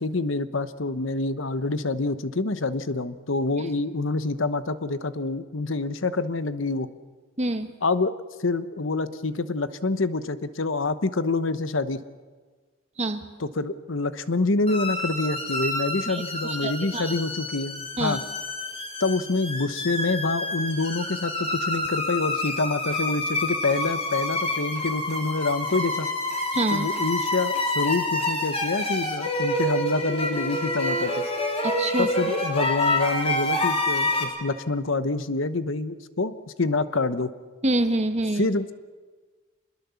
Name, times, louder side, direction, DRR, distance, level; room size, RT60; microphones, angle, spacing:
voice 1, 0.0-6.9 7.8-12.0 13.4-18.2 19.0-26.1 26.7-31.2 32.0-37.3 38.4-38.7, left 3 dB, 65° left, 13 dB, 1.0 m, -27 dB
voice 2, 7.4-7.7 13.0-13.2 16.1-17.1 18.0-18.2 26.5-26.8 31.6-32.1 37.6-38.5, right 2 dB, 30° right, 8 dB, 1.4 m, -26 dB
sound 1, 14.7-34.2, left 1 dB, 30° left, 3.4 m, -28 dB
25.5 x 21.5 x 7.1 m, 1.4 s
head